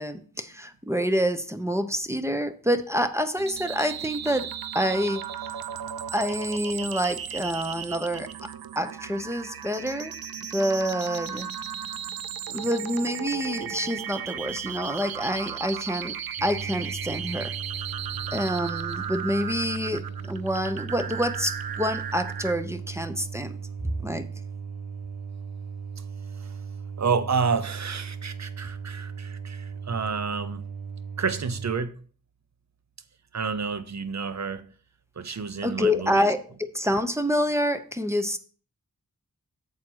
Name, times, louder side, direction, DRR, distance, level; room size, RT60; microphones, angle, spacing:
voice 1, 0.0-4.5 4.7-5.2 6.1-10.1 10.5-11.5 12.5-17.5 18.3-23.6 24.0-24.3 35.6-38.4, equal, 10° right, 0.8 m, -27 dB
sound 1, 3.4-22.5, right 8 dB, 90° right, 0.6 m, -35 dB
sound 2, 16.4-31.7, right 6 dB, 70° right, 1.1 m, -37 dB
voice 2, 27.0-30.6 31.2-32.0 33.3-34.7 35.2-36.2, right 5 dB, 50° right, 0.8 m, -29 dB
7.6 x 4.4 x 6.2 m
cardioid pair, 60°, 35 cm